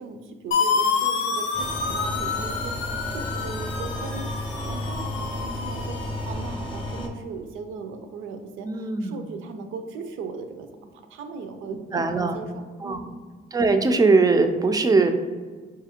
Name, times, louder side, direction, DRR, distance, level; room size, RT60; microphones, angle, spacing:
voice 1, 0.0-10.7 10.9-13.1, right 4 dB, 85° right, 7 dB, 0.5 m, -38 dB
sound 1, 0.5-6.3, left 5 dB, 65° left, 0.5 m, -28 dB
sound 2, 1.5-7.1, left 1 dB, 25° left, 0.6 m, -32 dB
voice 2, 8.6-9.2 11.9-12.4 12.8-13.0 13.5-15.1, right 3 dB, 20° right, 7 dB, 0.3 m, -20 dB
4.7 x 2.5 x 2.8 m, 1.5 s
cardioid pair, 90°, 20 cm